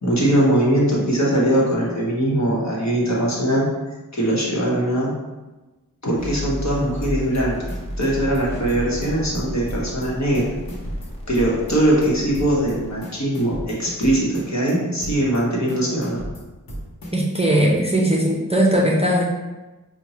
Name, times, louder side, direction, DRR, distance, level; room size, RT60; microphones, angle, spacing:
voice 1, 0.0-3.7 4.1-5.1 6.0-7.6 8.0-10.4 11.3-16.2, right 1 dB, 50° left, -4 dB, 1.2 m, -21 dB
sound 1, 6.2-13.0, equal, 15° left, 0.9 m, -33 dB
sound 2, 7.0-7.4 7.7-9.4 9.7-10.1 10.3-12.1 12.3-12.7 13.0-14.7 15.0-15.4 15.7-17.4, right 1 dB, 90° left, 0.9 m, -34 dB
voice 2, 17.1-19.2, right 1 dB, 15° right, -3 dB, 0.6 m, -19 dB
5.1 x 2.2 x 3.0 m, 1.1 s
wide cardioid pair, 55°, 35 cm